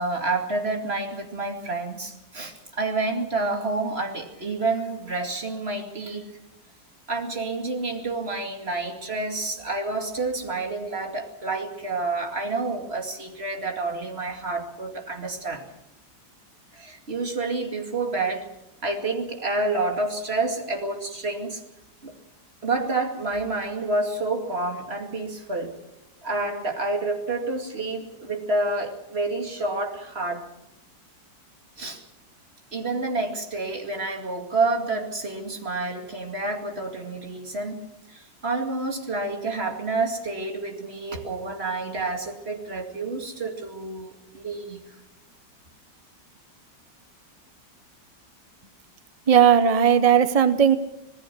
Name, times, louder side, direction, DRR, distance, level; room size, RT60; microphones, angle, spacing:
voice 1, 0.0-6.3 7.1-15.6 16.7-18.5 18.8-21.6 22.0-22.1 22.6-25.8 26.2-30.5 31.8-32.0 32.7-37.8 38.1-44.8, right 3 dB, 35° right, 4 dB, 2.6 m, -29 dB
voice 2, 49.3-50.8, right 8 dB, 50° right, 11 dB, 0.4 m, -17 dB
26.0 x 19.0 x 6.1 m, 0.89 s
omnidirectional pair, 2.0 m